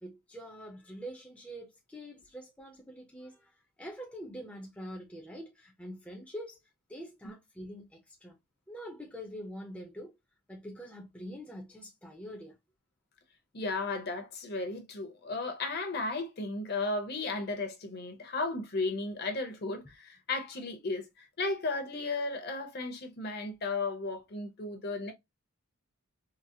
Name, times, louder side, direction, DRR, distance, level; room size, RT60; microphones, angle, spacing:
voice 1, 0.0-6.6 6.9-8.4 8.7-10.1 10.5-12.5, equal, 5° left, 0.5 m, -45 dB
voice 2, 13.5-25.1, left 3 dB, 45° left, 0.8 m, -34 dB
3.9 x 2.0 x 2.7 m
head